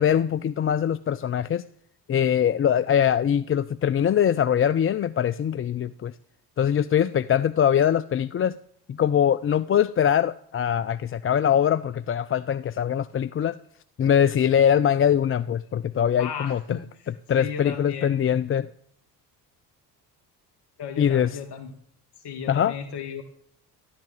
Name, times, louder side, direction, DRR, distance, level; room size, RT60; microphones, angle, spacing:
voice 1, 0.0-1.6 2.1-6.1 6.6-8.6 8.9-13.6 14.0-16.6 17.1-18.7 21.0-21.4 22.5-22.7, left 9 dB, 25° left, 15 dB, 0.5 m, -22 dB
voice 2, 16.2-18.2 20.8-21.7 22.2-23.2, left 7 dB, 55° left, 4 dB, 2.1 m, -36 dB
12.5 x 11.5 x 7.4 m, 0.67 s
figure-of-eight pair, 50°, 49 cm